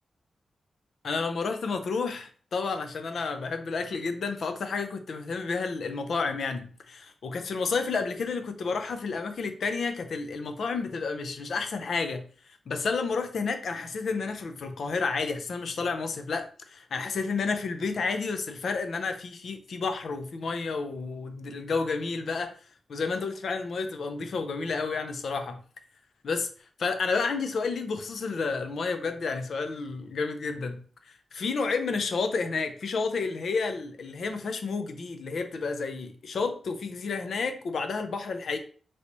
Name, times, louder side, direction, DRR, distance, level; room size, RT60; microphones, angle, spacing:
voice 1, 1.0-12.2 12.7-22.5 22.9-25.6 26.2-26.5 26.8-30.8 31.0-38.6, left 4 dB, 60° left, 7 dB, 0.4 m, -31 dB
3.3 x 2.8 x 2.6 m, 0.43 s
wide cardioid pair, 180°, 0 cm